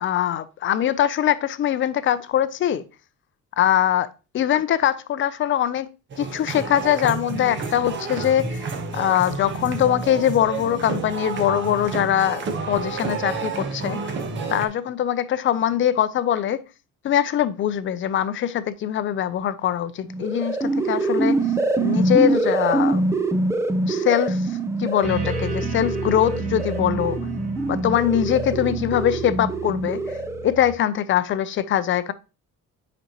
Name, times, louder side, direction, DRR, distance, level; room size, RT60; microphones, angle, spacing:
voice 1, 0.0-2.8 3.6-4.1 4.3-5.9 6.2-8.7 8.9-14.0 14.5-16.6 17.0-21.4 21.8-23.0 23.8-27.2 27.7-30.2 30.4-32.1, left 10 dB, 40° left, 0.5 m, -22 dB
sound 1, 6.1-14.7, right 4 dB, 40° right, 1.0 m, -30 dB
sound 2, 20.1-30.6, right 2 dB, 10° right, 0.5 m, -24 dB
sound 3, 25.0-30.7, right 2 dB, 55° right, 1.7 m, -32 dB
8.0 x 5.2 x 2.9 m
cardioid pair, 155°, 29 cm